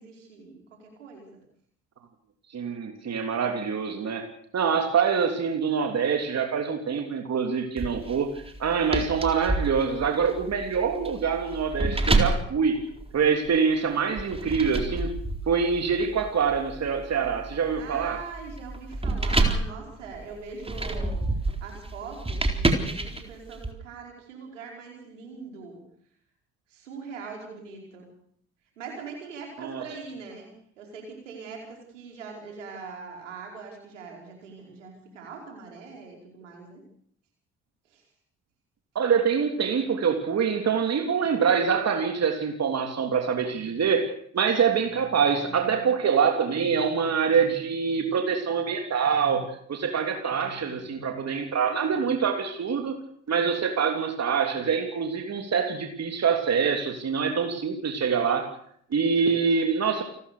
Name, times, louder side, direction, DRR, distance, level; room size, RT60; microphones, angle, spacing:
voice 1, 0.0-1.4 17.7-25.8 26.7-28.1 28.8-36.8 37.9-38.0, right 5 dB, 85° right, 1 dB, 5.0 m, -42 dB
voice 2, 2.5-4.3 4.5-8.3 8.6-12.8 13.1-15.1 15.5-18.2 29.6-29.8 38.9-44.1 44.3-53.0 53.3-58.5 58.9-60.0, right 6 dB, 45° right, 4 dB, 3.3 m, -25 dB
sound 1, 7.8-13.6 14.2-23.7, right 2 dB, 15° right, 4.1 m, -29 dB
29.0 x 13.5 x 6.8 m, 0.63 s
figure-of-eight pair, 45°, 36 cm